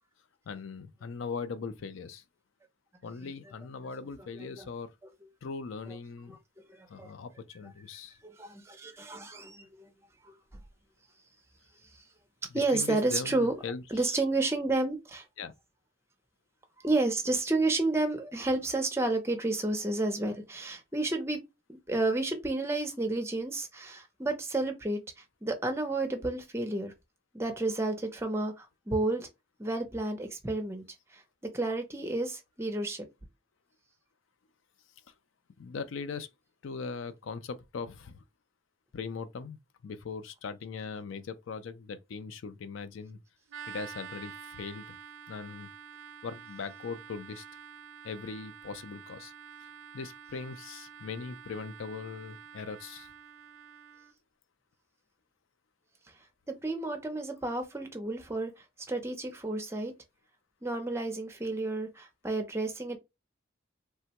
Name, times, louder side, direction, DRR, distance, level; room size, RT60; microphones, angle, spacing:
voice 1, 0.5-2.2 3.0-4.9 5.4-6.4 6.9-8.2 12.5-13.8 15.4-15.5 35.6-36.3 36.6-38.2 38.9-43.2 43.7-45.0 45.3-45.7 46.2-47.5 48.0-49.3 49.9-53.1, left 5 dB, 85° left, 0.4 m, -40 dB
voice 2, 6.7-7.1 8.2-9.9 12.5-13.5 13.9-15.2 16.8-21.4 21.7-26.9 27.3-29.3 29.6-30.8 31.1-31.2 31.5-33.0 56.5-58.5 58.9-59.9 60.6-63.0, right 2 dB, 15° right, 0.6 m, -31 dB
sound 1, 43.5-54.1, right 7 dB, 80° right, 0.5 m, -48 dB
3.3 x 2.2 x 2.8 m
head